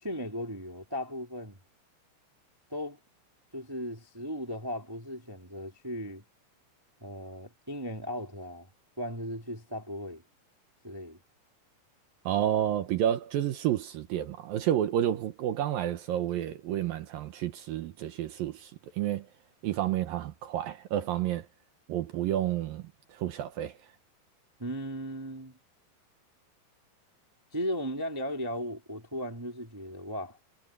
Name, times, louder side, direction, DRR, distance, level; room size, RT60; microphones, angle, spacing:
voice 1, 0.0-1.6 2.7-3.0 3.5-6.2 7.0-8.7 9.0-10.2 10.8-11.2 24.6-25.6 27.5-30.4, equal, 10° right, 1.2 m, -36 dB
voice 2, 12.3-19.3 19.6-21.5 21.9-22.8 23.1-23.8, right 11 dB, 70° right, 2.4 m, -30 dB
omnidirectional pair, 4.8 m